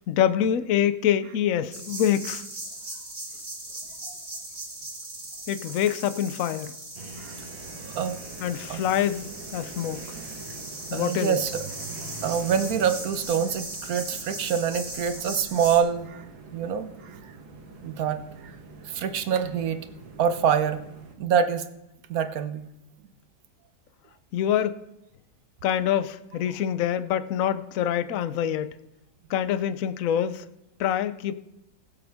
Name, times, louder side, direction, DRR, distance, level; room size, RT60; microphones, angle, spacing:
voice 1, 0.1-2.4 5.5-6.7 8.4-9.3 9.5-10.0 10.9-11.4 24.3-24.7 25.6-28.7 29.3-30.4 30.8-31.3, left 10 dB, 65° left, 12 dB, 0.8 m, -25 dB
sound 1, 1.7-15.8, right 2 dB, 25° right, 2.4 m, -39 dB
sound 2, 6.9-21.1, right 4 dB, 85° right, 2.1 m, -44 dB
voice 2, 7.8-8.2 8.7-8.8 10.9-11.6 12.2-16.2 16.5-17.3 17.8-18.6 18.8-19.8 20.2-20.8 21.2-21.6 22.1-22.6, right 7 dB, 60° right, 9 dB, 1.2 m, -26 dB
20.5 x 7.5 x 3.5 m, 0.86 s
omnidirectional pair, 2.1 m